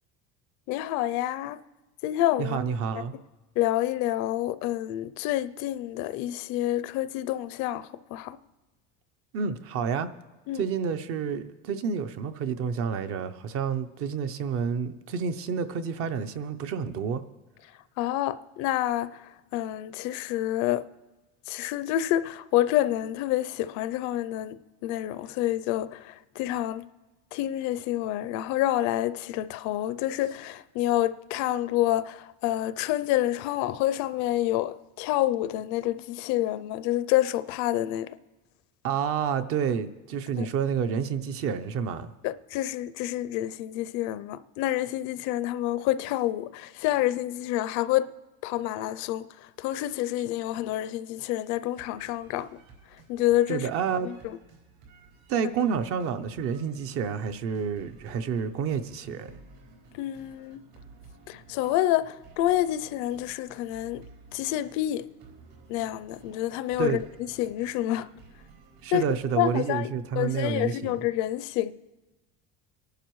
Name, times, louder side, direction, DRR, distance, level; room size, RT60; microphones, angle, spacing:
voice 1, 0.7-1.6 2.0-2.6 3.6-8.4 10.5-10.6 18.0-19.1 19.5-20.9 21.5-24.6 24.8-26.8 27.3-38.1 40.4-40.5 42.2-48.1 48.4-49.3 49.6-52.5 53.1-53.7 54.0-54.4 59.9-60.6 61.3-64.0 64.3-65.1 65.7-68.1 68.9-69.0 69.4-69.9 70.2-71.7, left 14 dB, 60° left, 0.5 m, -28 dB
voice 2, 2.4-3.1 9.3-10.1 10.5-17.2 38.8-42.1 53.5-54.1 55.3-59.4 66.8-67.0 68.8-71.0, right 6 dB, 45° right, 0.6 m, -29 dB
sound 1, 51.8-69.7, right 4 dB, 70° right, 4.3 m, -54 dB
23.5 x 11.5 x 3.1 m
cardioid pair, 170°, 32 cm